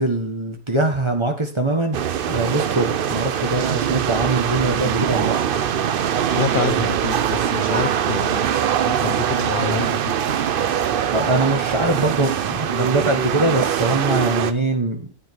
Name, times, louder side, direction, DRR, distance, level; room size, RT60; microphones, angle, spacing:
voice 1, 0.0-5.4 11.1-15.1, right 2 dB, 20° right, 4 dB, 1.6 m, -22 dB
sound 1, 1.9-14.5, right 9 dB, 70° right, 0.5 m, -22 dB
voice 2, 6.3-8.4 8.9-10.1, left 7 dB, 80° left, 11 dB, 0.4 m, -27 dB
10.5 x 7.9 x 4.6 m, 0.40 s
omnidirectional pair, 1.6 m